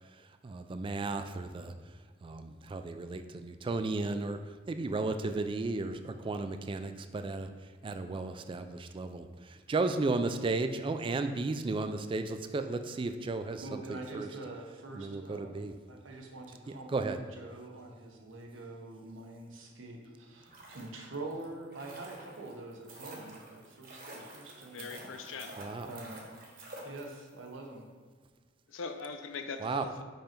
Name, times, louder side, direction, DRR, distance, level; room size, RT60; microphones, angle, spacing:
voice 1, 0.4-1.7 2.2-4.4 4.7-7.5 7.8-14.3 14.9-15.7 16.7-17.2 25.6-26.0 29.6-29.9, right 3 dB, 25° right, 8 dB, 0.3 m, -34 dB
voice 2, 13.6-25.5 25.8-26.2 26.8-27.9, right 2 dB, 85° right, 2 dB, 1.0 m, -45 dB
sound 1, 20.3-27.5 27.7-27.8, right 1 dB, 50° right, 1.2 m, -49 dB
voice 3, 24.6-25.6 28.7-30.0, left 4 dB, 90° left, 7 dB, 0.6 m, -41 dB
5.4 x 5.1 x 4.4 m, 1.4 s
head